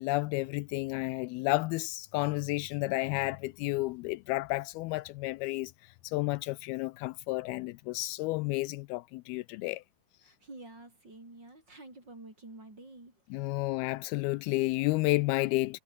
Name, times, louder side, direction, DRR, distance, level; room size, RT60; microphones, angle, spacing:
voice 1, 0.0-5.7 6.0-9.8 13.3-15.8, left 21 dB, 85° left, 2.4 m, -31 dB
voice 2, 10.2-13.2, right 2 dB, 25° right, 7.5 m, -49 dB
omnidirectional pair, 4.5 m